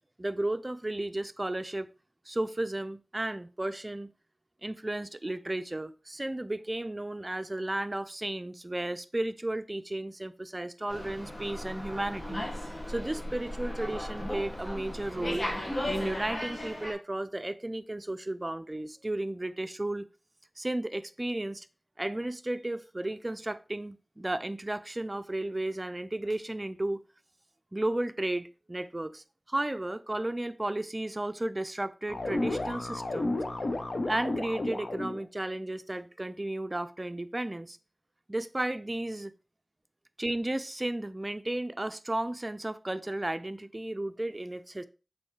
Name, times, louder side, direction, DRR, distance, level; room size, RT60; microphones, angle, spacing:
voice 1, 0.2-1.9 2.3-4.1 4.6-12.4 12.7-15.5 15.9-20.1 20.6-21.7 22.0-27.0 27.7-33.4 34.1-37.8 38.3-39.3 40.2-44.9, right 1 dB, 30° right, 0.5 m, -34 dB
Slam, 10.9-16.9, left 1 dB, 45° left, 2.2 m, -36 dB
sound 1, 32.1-35.2, left 2 dB, 75° left, 0.9 m, -32 dB
6.7 x 4.5 x 3.3 m
wide cardioid pair, 55°, 0 cm